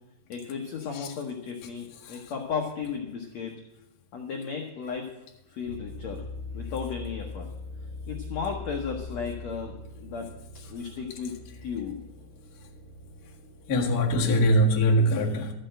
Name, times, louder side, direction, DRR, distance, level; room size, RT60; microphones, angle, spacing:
voice 1, 0.3-3.5 4.1-5.1 5.5-6.2 6.5-7.5 8.1-10.3 10.7-12.0, left 6 dB, 70° left, 1.6 m, -34 dB
sound 1, 5.7-14.6, left 3 dB, 65° right, 5.4 m, -41 dB
voice 2, 13.7-15.5, equal, 55° left, 1.0 m, -22 dB
13.0 x 6.6 x 7.7 m
omnidirectional pair, 4.6 m